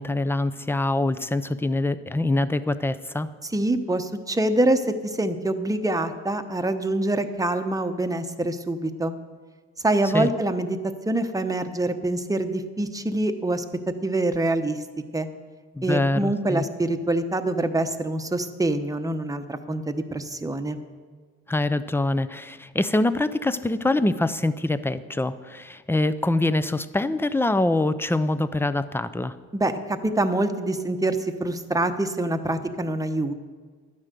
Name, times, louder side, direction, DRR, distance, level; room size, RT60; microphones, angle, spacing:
voice 1, 0.0-3.3 10.1-10.3 15.8-16.6 21.5-29.4, left 2 dB, 10° left, 14 dB, 0.6 m, -24 dB
voice 2, 3.4-4.8 5.2-9.2 9.8-10.8 11.1-13.6 14.0-14.8 15.1-15.3 15.8-20.8 29.5-33.3, right 2 dB, 10° right, 7 dB, 1.0 m, -25 dB
12.5 x 9.7 x 6.8 m, 1.5 s
cardioid pair, 90°, 30 cm